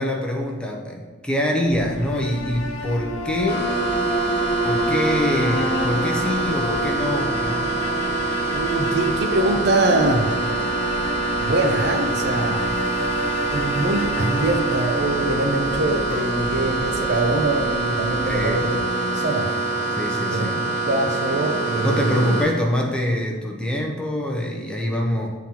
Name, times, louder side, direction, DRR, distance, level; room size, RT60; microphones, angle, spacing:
voice 1, 0.0-3.7 4.6-7.7 18.3-18.7 19.9-20.6 21.8-25.3, left 1 dB, 5° left, -1 dB, 0.6 m, -25 dB
sound 1, 1.6-18.8, equal, 40° right, 1.1 m, -40 dB
sound 2, 1.9-16.0, equal, 90° left, 0.7 m, -29 dB
sound 3, 3.5-22.4, right 2 dB, 25° left, 1.7 m, -25 dB
voice 2, 8.5-10.3 11.4-12.6 13.5-18.8 19.1-19.5 20.3-20.5 20.9-22.4, right 2 dB, 55° right, 4 dB, 0.6 m, -23 dB
8.8 x 3.8 x 2.9 m, 1.4 s
head